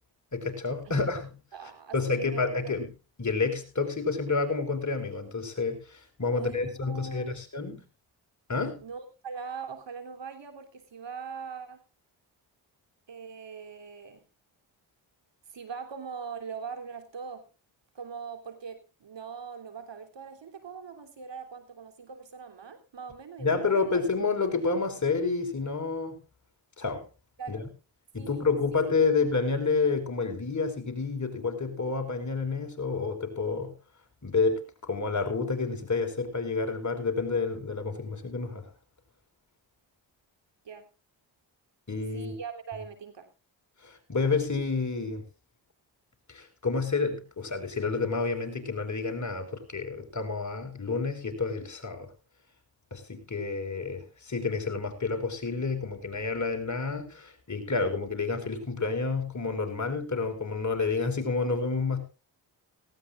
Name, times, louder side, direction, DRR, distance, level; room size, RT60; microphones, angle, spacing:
voice 1, 0.3-1.3 1.9-2.9 3.2-7.8 8.5-8.8 23.4-26.2 26.8-27.0 27.5-27.7 28.1-33.7 34.2-38.7 41.9-42.3 43.8-45.2 46.3-52.1 52.9-62.0, left 4 dB, 35° left, 4 dB, 4.8 m, -29 dB
voice 2, 0.8-1.1 1.5-2.8 6.3-7.4 8.8-11.8 13.1-14.2 15.5-17.4 17.9-23.9 27.4-27.7 28.2-28.5 40.6-40.9 42.1-43.3, right 6 dB, 65° right, 7 dB, 3.4 m, -41 dB
18.0 x 17.0 x 2.5 m, 0.31 s
cardioid pair, 55°, 47 cm